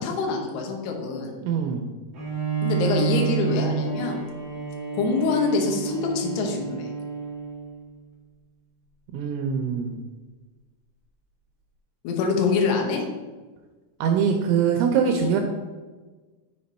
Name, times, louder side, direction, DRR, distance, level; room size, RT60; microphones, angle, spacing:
voice 1, 0.0-1.3 2.6-4.2 4.9-6.9 12.0-13.0 15.0-15.3, left 4 dB, 70° left, 1 dB, 2.7 m, -25 dB
voice 2, 1.4-1.9 9.1-10.0 14.0-15.4, right 7 dB, 80° right, 3 dB, 2.9 m, -23 dB
Bowed string instrument, 2.1-7.8, right 6 dB, 55° right, 1.3 m, -29 dB
6.9 x 5.7 x 4.2 m, 1.3 s
omnidirectional pair, 5.7 m